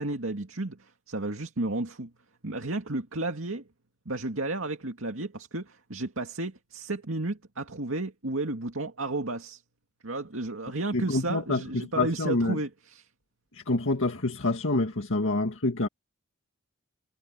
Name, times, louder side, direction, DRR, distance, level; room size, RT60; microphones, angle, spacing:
voice 1, 0.0-2.1 2.4-3.6 4.1-9.6 10.0-13.1, right 2 dB, 70° right, 2.4 m, -32 dB
voice 2, 10.9-12.6 13.7-15.9, left 2 dB, 65° left, 1.9 m, -27 dB
head